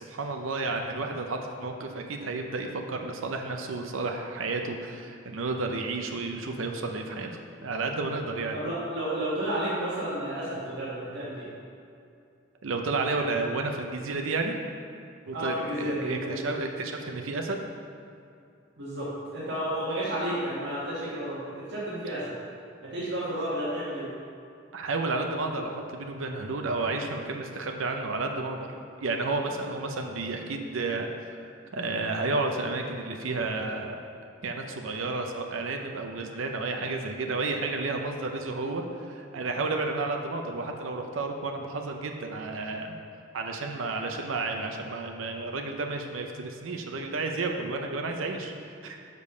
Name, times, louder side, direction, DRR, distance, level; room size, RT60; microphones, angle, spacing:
voice 1, 0.0-7.3 7.6-8.6 12.6-14.5 15.3-17.7 24.7-28.7 29.0-34.0 34.4-43.0 43.3-49.0, right 3 dB, 85° right, 3 dB, 0.6 m, -31 dB
voice 2, 8.5-11.5 15.3-16.5 18.8-22.3 22.8-24.1, right 1 dB, 60° right, -9 dB, 1.5 m, -32 dB
6.6 x 5.3 x 5.4 m, 2.5 s
head